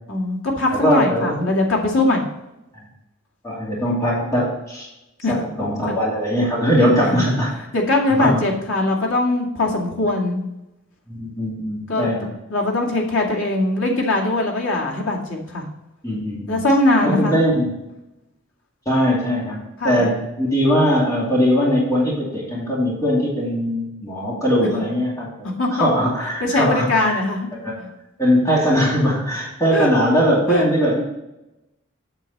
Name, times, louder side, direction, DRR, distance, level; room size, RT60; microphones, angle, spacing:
voice 1, 0.1-2.3 5.2-5.3 5.9-6.0 6.8-7.2 7.7-10.4 11.9-12.1 12.5-15.7 16.5-17.4 19.8-20.0 24.7-24.8 25.6-25.9 26.4-27.5 27.8-27.9 29.7-29.9 30.5-30.7, left 2 dB, 85° left, -1 dB, 2.1 m, -21 dB
voice 2, 0.8-1.4 3.4-4.9 5.3-7.5 8.2-8.4 11.1-12.3 16.0-16.6 17.0-17.8 18.9-27.2 27.6-27.7 28.2-31.0, equal, 15° left, -5 dB, 2.5 m, -20 dB
8.2 x 7.2 x 4.2 m, 0.92 s
head